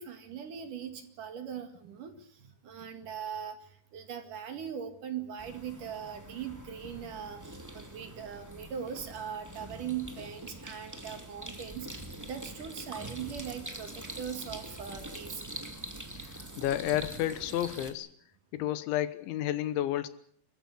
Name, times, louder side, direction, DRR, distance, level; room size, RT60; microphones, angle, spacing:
voice 1, 0.0-15.4, right 8 dB, 55° right, 7 dB, 3.2 m, -40 dB
sound 1, 5.4-17.9, right 1 dB, 10° right, 0.9 m, -44 dB
voice 2, 16.2-18.1 18.5-20.1, left 13 dB, 90° left, 14 dB, 3.6 m, -31 dB
28.0 x 15.0 x 8.4 m, 0.62 s
omnidirectional pair, 5.2 m